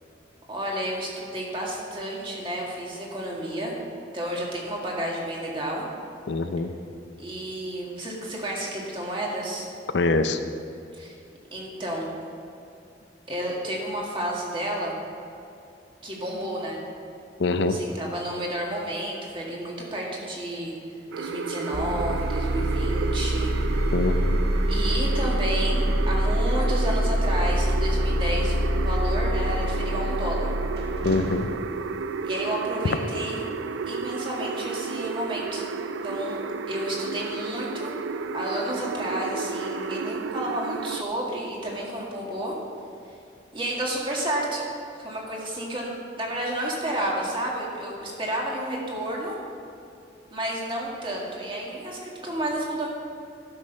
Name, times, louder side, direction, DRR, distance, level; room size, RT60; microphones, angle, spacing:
voice 1, 0.5-3.7 4.1-5.8 7.2-9.7 10.9-11.1 11.5-12.1 13.3-14.9 16.0-16.8 17.7-20.7 21.2-23.5 24.7-30.5 32.2-33.4 33.9-35.7 36.0-36.4 36.7-37.9 38.3-42.5 43.5-44.6 45.0-49.4 50.3-52.9, right 1 dB, 30° right, -3 dB, 1.8 m, -31 dB
voice 2, 6.3-6.7 9.9-10.4 17.4-17.8 23.9-24.4 31.0-31.5, left 3 dB, 70° left, 9 dB, 0.5 m, -24 dB
sound 1, 21.1-41.0, right 5 dB, 85° right, 0.4 m, -33 dB
sound 2, 21.7-31.4, equal, 60° right, 1.5 m, -25 dB
11.5 x 6.5 x 5.4 m, 2.7 s
head